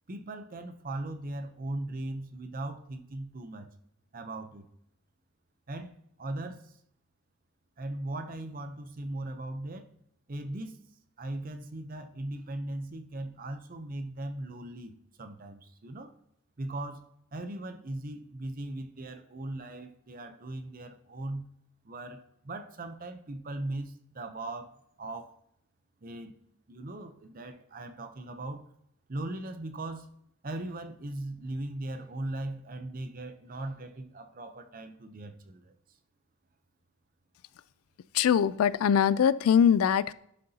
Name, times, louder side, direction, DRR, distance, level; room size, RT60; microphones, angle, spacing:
voice 1, 0.1-3.7 4.1-4.7 5.7-6.7 7.8-9.9 10.3-10.8 11.2-16.1 16.6-21.5 21.8-25.4 26.0-26.3 26.7-28.6 29.1-30.1 30.4-35.7, right 1 dB, 40° right, 0.7 m, -39 dB
voice 2, 38.1-40.1, left 8 dB, 75° left, 0.3 m, -22 dB
11.0 x 6.7 x 2.8 m
head